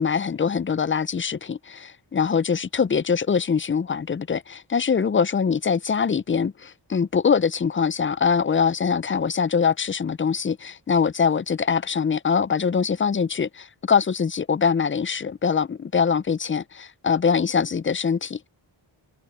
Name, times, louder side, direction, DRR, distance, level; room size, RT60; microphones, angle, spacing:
voice 1, 0.0-18.4, left 6 dB, 25° left, 0.5 m, -23 dB
cardioid pair, 55°, 49 cm